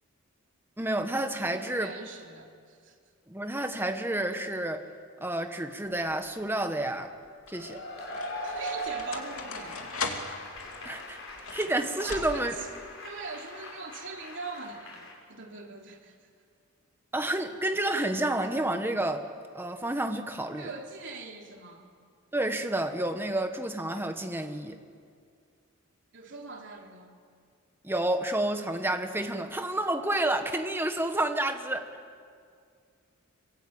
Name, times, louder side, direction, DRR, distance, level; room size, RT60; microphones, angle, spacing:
voice 1, 0.8-1.9 3.3-4.8 5.2-7.1 7.5-7.8 10.8-11.2 11.5-12.5 17.1-19.2 19.5-20.7 22.3-24.8 27.8-31.8, right 1 dB, 10° right, 6 dB, 1.6 m, -30 dB
voice 2, 1.4-3.0 8.4-9.8 12.0-12.7 13.0-16.3 20.6-21.9 26.1-27.1, right 3 dB, 60° right, 0 dB, 3.6 m, -42 dB
sound 1, 5.9-6.4 7.2-12.7, left 4 dB, 85° left, 2.7 m, -40 dB
Cheering / Applause / Crowd, 7.5-15.2, equal, 65° left, 5.5 m, -40 dB
26.5 x 23.5 x 9.0 m, 2.2 s
head